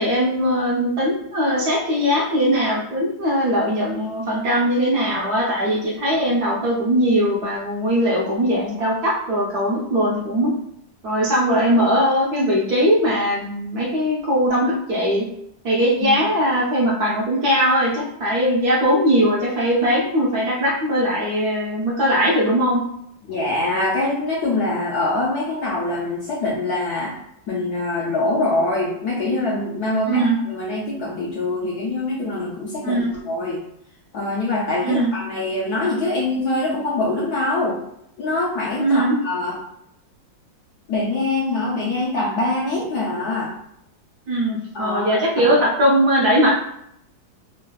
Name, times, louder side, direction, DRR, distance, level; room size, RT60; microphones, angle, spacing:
voice 1, 0.0-10.5 11.0-15.2 15.6-22.8 30.1-30.4 32.8-33.1 34.8-35.1 38.8-39.2 44.3-46.5, equal, 65° right, -5 dB, 1.0 m, -20 dB
voice 2, 23.3-27.2 27.5-33.6 34.1-37.8 38.2-39.6 40.9-43.5 44.7-45.5, left 2 dB, 70° left, -4 dB, 0.9 m, -24 dB
3.3 x 2.2 x 2.2 m, 0.74 s
omnidirectional pair, 2.0 m